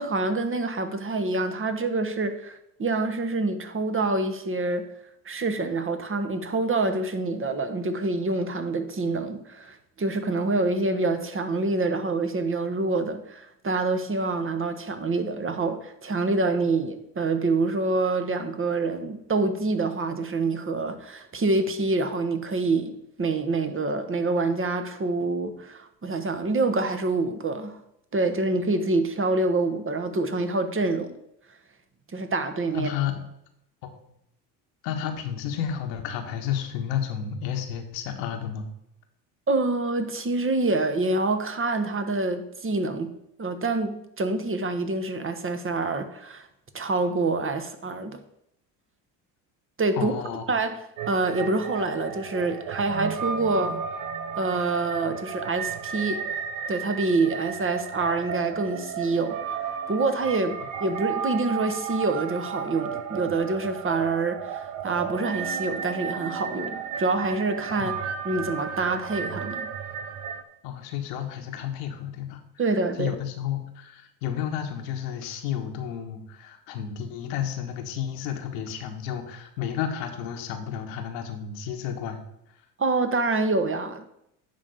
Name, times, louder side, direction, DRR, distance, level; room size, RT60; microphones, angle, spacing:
voice 1, 0.0-4.9 5.2-27.8 28.1-31.2 32.1-32.9 39.5-43.1 43.4-46.5 46.7-48.2 49.8-50.1 50.5-50.8 51.1-53.8 54.4-56.2 56.7-59.4 59.9-67.9 68.2-69.7 72.6-73.1 82.8-84.1, right 3 dB, 25° right, 1.2 m, -26 dB
voice 2, 32.7-33.2 33.8-34.0 34.8-38.7 49.9-50.4 67.8-68.0 70.6-72.4 73.0-82.2, left 9 dB, 75° left, 1.5 m, -31 dB
sound 1, 51.0-70.4, right 7 dB, 75° right, 1.0 m, -33 dB
10.5 x 3.7 x 7.0 m
hypercardioid pair, 65°, 50 cm